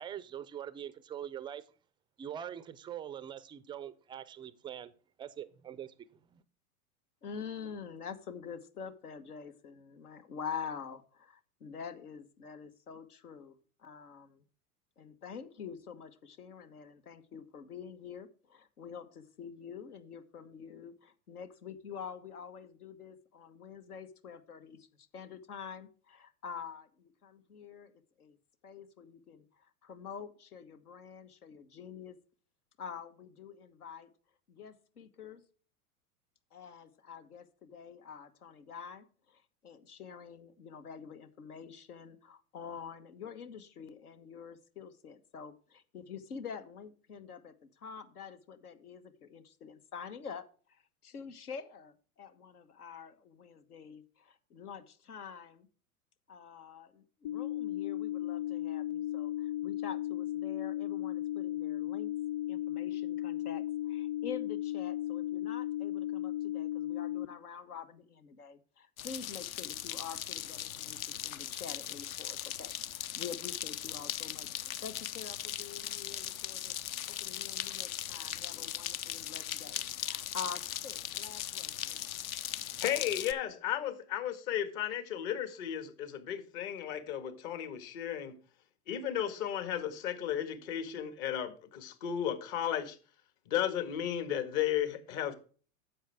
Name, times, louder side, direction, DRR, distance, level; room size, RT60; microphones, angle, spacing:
voice 1, 0.0-1.6 2.2-4.9 5.2-5.9 6.3-6.4, right 9 dB, 10° right, 0.3 m, -43 dB
voice 2, 7.2-14.4 15.0-27.9 28.2-28.4 28.6-32.2 32.8-34.1 34.5-35.4 36.5-55.7 56.3-62.1 62.5-82.1, left 6 dB, 80° left, 1.3 m, -47 dB
sound 1, 57.2-67.3, left 14 dB, 20° left, 0.7 m, -35 dB
sound 2, 69.0-83.3, left 11 dB, 65° left, 0.9 m, -39 dB
voice 3, 82.8-88.4 88.9-93.0 93.5-95.4, left 10 dB, 50° left, 1.8 m, -34 dB
10.0 x 7.3 x 3.4 m
hypercardioid pair, 100°, 44 cm